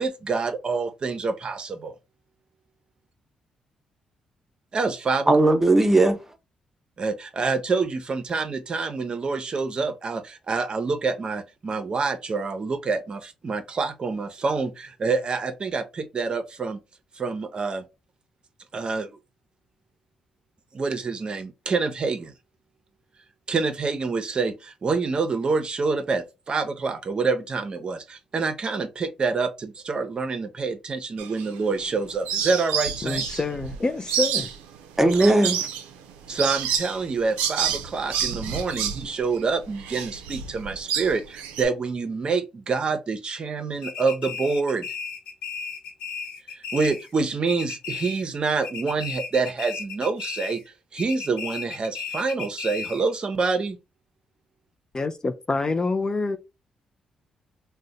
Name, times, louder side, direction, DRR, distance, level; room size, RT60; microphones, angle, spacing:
voice 1, 0.0-1.9 4.7-5.3 7.0-16.8 17.2-17.8 18.7-19.1 20.7-22.3 23.5-33.4 36.3-44.9 46.7-50.6 50.9-53.8, right 4 dB, 45° right, 0.6 m, -27 dB
voice 2, 5.3-6.2 35.0-35.7, right 2 dB, 15° right, 0.8 m, -18 dB
sound 1, 31.2-31.9 32.3-41.6, right 8 dB, 90° right, 0.4 m, -29 dB
voice 3, 33.0-34.5 54.9-56.4, left 3 dB, 35° left, 0.4 m, -26 dB
sound 2, 43.8-47.2 47.5-48.4 48.6-50.7 51.0-53.1, left 6 dB, 80° left, 0.9 m, -35 dB
2.6 x 2.1 x 3.9 m
supercardioid pair, 55°, 2 cm